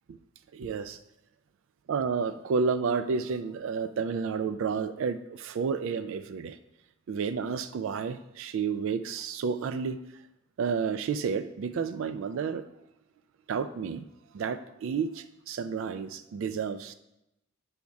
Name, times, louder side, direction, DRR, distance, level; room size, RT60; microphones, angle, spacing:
voice 1, 0.5-1.0 1.9-6.6 7.1-10.0 10.6-12.6 13.5-14.0 14.3-16.9, right 5 dB, 65° right, 10 dB, 0.3 m, -31 dB
8.3 x 3.5 x 5.1 m, 0.88 s
head